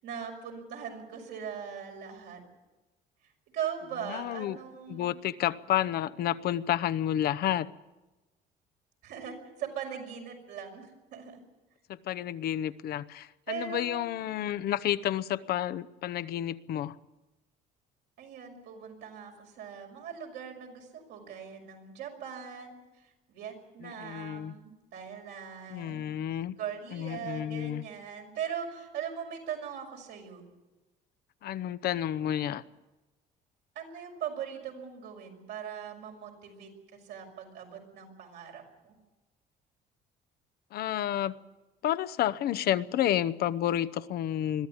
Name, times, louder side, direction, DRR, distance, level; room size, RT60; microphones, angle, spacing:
voice 1, 0.0-2.4 3.5-5.2 9.0-11.4 13.5-14.2 18.2-26.2 26.6-30.4 33.7-36.7 37.0-38.9, right 8 dB, 80° right, 6.0 m, -40 dB
voice 2, 4.1-4.6 4.9-7.7 11.9-17.0 23.8-24.5 25.7-26.6 26.9-27.8 31.4-32.6 40.7-41.3 41.8-44.7, left 11 dB, 65° left, 0.8 m, -30 dB
22.0 x 14.0 x 9.7 m
cardioid pair, 110°, 17 cm